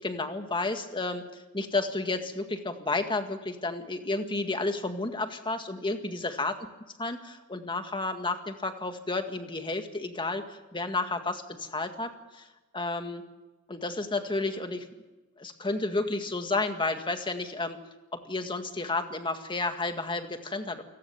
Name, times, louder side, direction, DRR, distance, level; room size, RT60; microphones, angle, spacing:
voice 1, 0.0-6.5 7.0-12.5 12.7-13.3 13.7-14.9 15.4-17.8 18.1-20.8, left 2 dB, 20° left, 6 dB, 1.9 m, -31 dB
29.0 x 18.5 x 7.2 m, 1.1 s
head